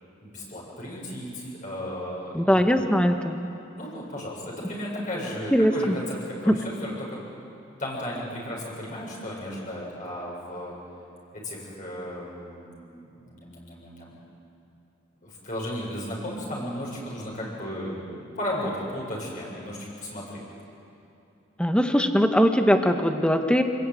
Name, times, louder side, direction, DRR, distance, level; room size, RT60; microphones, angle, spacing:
voice 1, 0.2-2.7 3.8-7.2 7.8-10.7 11.3-14.1 15.2-20.4, left 1 dB, 40° left, -4 dB, 7.2 m, -35 dB
voice 2, 2.3-3.4 5.5-5.9 6.5-6.6 21.6-23.6, equal, 5° left, 5 dB, 1.5 m, -21 dB
28.0 x 20.5 x 9.4 m, 2.8 s
head